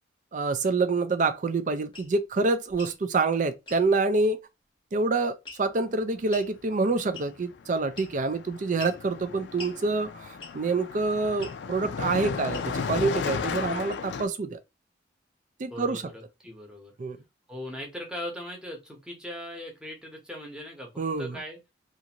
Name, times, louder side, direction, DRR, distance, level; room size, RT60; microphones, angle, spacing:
voice 1, 0.3-4.4 4.9-14.6 15.6-16.0 17.0-17.2 21.0-21.4, right 3 dB, 45° right, 0.4 m, -27 dB
sound 1, 1.9-2.1 2.7-3.0 3.7-3.8 5.5-5.8 6.3-6.5 7.1-7.5 8.0-8.3 8.8-9.0 9.6-9.8 10.4-10.7 11.4-11.6 12.5-12.9, left 3 dB, 25° left, 0.8 m, -43 dB
Car passing by, 6.8-7.0 7.3-14.3, left 5 dB, 65° left, 0.4 m, -34 dB
voice 2, 15.7-16.9 17.5-20.9 21.2-21.6, equal, 5° right, 0.9 m, -39 dB
2.5 x 2.5 x 2.8 m
head